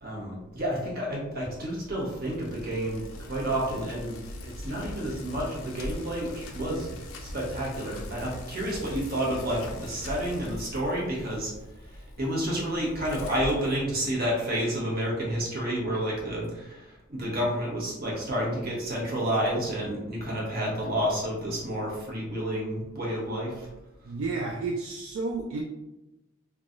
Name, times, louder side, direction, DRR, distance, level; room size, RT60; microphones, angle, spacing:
voice 1, 0.0-6.9 7.2-11.5 11.9-23.7, equal, 45° right, -4 dB, 1.0 m, -30 dB
Bicycle, 1.2-14.4, left 1 dB, 85° left, 0.4 m, -42 dB
voice 2, 24.0-25.6, right 3 dB, 65° right, 0 dB, 0.3 m, -31 dB
3.2 x 2.2 x 2.5 m, 0.99 s
head